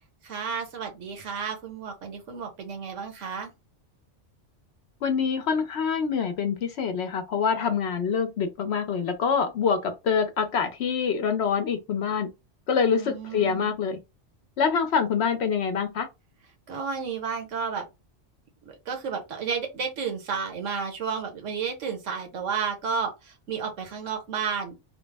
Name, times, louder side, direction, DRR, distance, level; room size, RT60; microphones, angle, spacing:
voice 1, 0.2-3.5 12.9-13.7 16.7-17.8 18.6-24.7, right 6 dB, 80° right, 1.3 m, -32 dB
voice 2, 5.0-12.3 12.7-14.0 14.6-16.1, left 6 dB, 65° left, 0.8 m, -25 dB
3.3 x 2.0 x 3.3 m
omnidirectional pair, 1.3 m